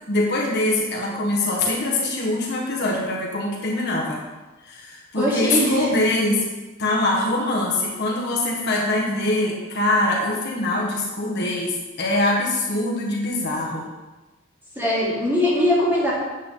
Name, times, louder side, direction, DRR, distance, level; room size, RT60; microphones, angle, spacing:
voice 1, 0.1-4.2 4.6-6.4 6.8-13.9, left 2 dB, 55° left, -3 dB, 1.6 m, -23 dB
voice 2, 5.1-5.9 14.7-16.1, equal, 10° right, -8 dB, 3.4 m, -21 dB
9.2 x 8.1 x 3.9 m, 1.2 s
head